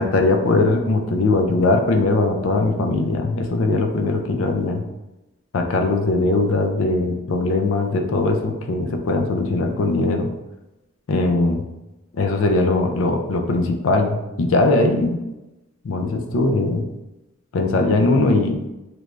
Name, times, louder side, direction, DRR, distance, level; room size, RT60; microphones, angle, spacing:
voice 1, 0.0-4.8 5.5-10.3 11.1-11.6 12.2-15.2 15.8-16.8 17.5-18.7, left 2 dB, 70° left, 4 dB, 0.4 m, -20 dB
3.2 x 2.5 x 3.2 m, 0.99 s
head